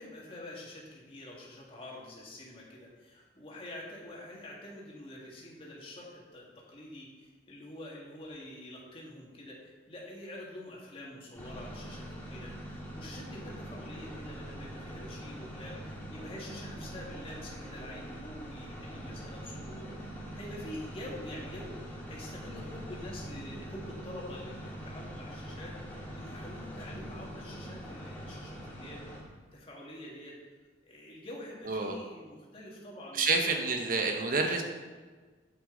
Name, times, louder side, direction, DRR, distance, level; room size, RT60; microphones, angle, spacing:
voice 1, 0.0-29.1 29.5-30.4 30.8-34.1, left 1 dB, 30° left, -4 dB, 2.0 m, -46 dB
sound 1, 11.3-29.2, equal, 10° left, 1.9 m, -43 dB
voice 2, 31.7-32.0 33.1-34.6, right 3 dB, 50° right, 3 dB, 1.0 m, -28 dB
8.5 x 8.1 x 3.9 m, 1.4 s
head